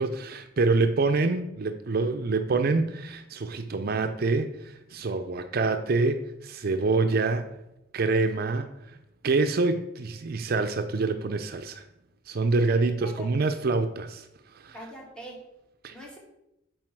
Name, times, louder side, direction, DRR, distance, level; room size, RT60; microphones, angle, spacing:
voice 1, 0.0-7.5 7.9-8.7 9.2-11.8 12.3-14.3 14.5-14.8 15.8-16.0, right 3 dB, 55° right, 8 dB, 0.5 m, -26 dB
voice 2, 12.6-13.3 14.7-15.4 15.9-16.2, equal, 5° left, -2 dB, 2.0 m, -43 dB
7.7 x 4.8 x 6.1 m, 0.87 s
head